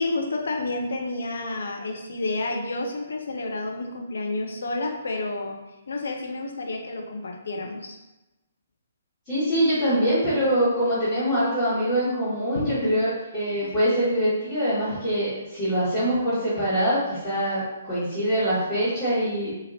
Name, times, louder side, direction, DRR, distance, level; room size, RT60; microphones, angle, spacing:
voice 1, 0.0-5.6 5.9-8.0 12.5-13.0 13.6-13.7, left 2 dB, 60° left, 2 dB, 0.5 m, -30 dB
voice 2, 9.3-19.5, equal, 20° left, -15 dB, 1.5 m, -24 dB
2.8 x 2.8 x 2.6 m, 0.99 s
figure-of-eight pair, 130°, 0 cm